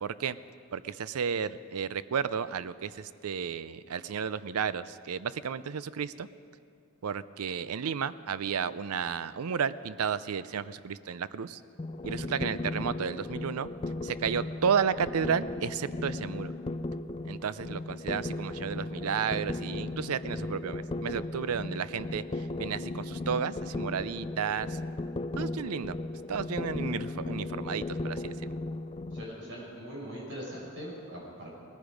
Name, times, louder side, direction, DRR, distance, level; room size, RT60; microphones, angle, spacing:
voice 1, 0.0-0.4 0.7-6.3 7.0-11.6 12.0-13.7 14.0-16.5 17.2-24.8 25.4-26.0 26.3-28.3, right 7 dB, 85° right, 16 dB, 0.5 m, -32 dB
sound 1, 11.8-29.2, left 2 dB, 25° left, 0.4 m, -36 dB
voice 2, 29.1-31.5, equal, 60° right, -3 dB, 5.4 m, -41 dB
19.0 x 14.5 x 5.2 m, 2.4 s
head